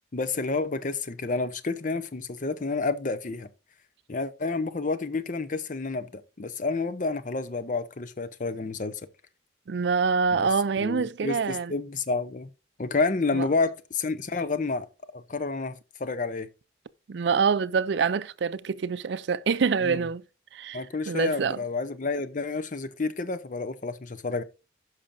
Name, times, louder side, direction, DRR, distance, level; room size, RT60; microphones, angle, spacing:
voice 1, 0.1-3.5 4.1-9.0 10.4-10.5 10.8-12.5 12.8-14.9 15.1-16.5 19.8-20.0 20.7-24.4, left 3 dB, 45° left, 0.7 m, -30 dB
voice 2, 9.7-11.7 13.3-13.5 17.1-20.2 20.5-21.6, right 5 dB, 65° right, 0.4 m, -26 dB
15.5 x 5.8 x 2.6 m
head